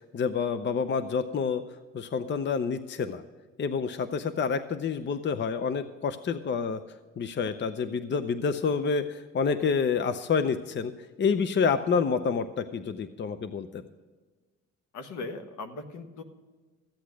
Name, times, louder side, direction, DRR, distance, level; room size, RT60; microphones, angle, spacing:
voice 1, 0.1-1.6 1.9-3.2 3.6-6.8 7.2-10.9 11.2-13.8, left 5 dB, 35° left, 11 dB, 0.6 m, -28 dB
voice 2, 14.9-16.2, left 3 dB, 75° left, 7 dB, 1.4 m, -39 dB
14.5 x 8.3 x 6.3 m, 1.3 s
cardioid pair, 90°, 30 cm